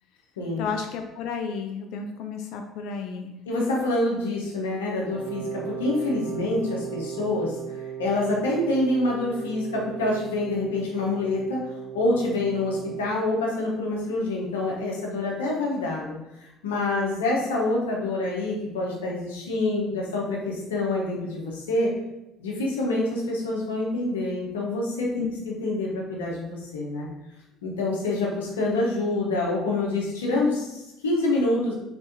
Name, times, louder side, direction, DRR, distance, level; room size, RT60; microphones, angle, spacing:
voice 1, 0.6-3.4 25.2-25.3, left 6 dB, 65° left, 5 dB, 0.3 m, -32 dB
voice 2, 3.5-21.9 22.4-25.3 25.6-27.1 27.6-31.7, left 2 dB, 85° left, -3 dB, 0.8 m, -26 dB
Wind instrument woodwind instrument, 5.1-13.1, right 8 dB, 75° right, 0.8 m, -37 dB
3.5 x 3.3 x 2.6 m, 0.94 s
hypercardioid pair, 60°, 0 cm